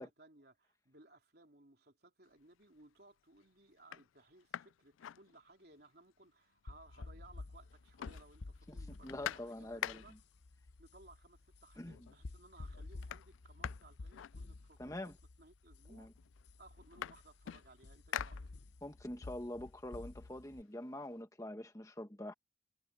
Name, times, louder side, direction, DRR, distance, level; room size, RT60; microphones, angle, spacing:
voice 1, 0.0-10.2 10.8-15.1 15.4-16.1 16.6-18.5, right 2 dB, 55° right, 3.6 m, -62 dB
sound 1, 2.4-2.8 3.3-3.4 3.8-5.9 6.2-6.3 6.5-7.4 7.6-10.4 11.3-11.4 11.8-12.3 12.5-15.0 15.8-15.9 16.2-19.0 19.4-21.1, left 10 dB, 85° left, 0.3 m, -47 dB
sound 2, 6.7-20.6, left 2 dB, 60° left, 0.7 m, -51 dB
voice 2, 8.7-10.2 11.8-12.1 14.8-15.2 15.9-16.1 18.8-22.3, left 1 dB, 15° left, 1.1 m, -45 dB
head